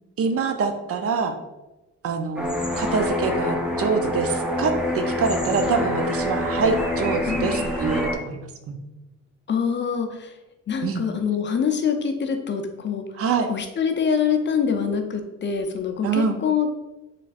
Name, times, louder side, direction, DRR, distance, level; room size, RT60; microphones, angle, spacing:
voice 1, 0.2-1.3 2.0-8.8 10.8-11.0 13.2-13.5 16.0-16.4, right 5 dB, 50° right, 7 dB, 0.5 m, -25 dB
sound 1, 2.4-8.1, left 1 dB, 5° right, 0.7 m, -26 dB
voice 2, 7.3-7.7 9.5-10.4 10.7-13.0 13.5-16.7, left 6 dB, 40° left, 6 dB, 0.5 m, -25 dB
4.0 x 3.2 x 2.4 m, 1.0 s
cardioid pair, 90°, 30 cm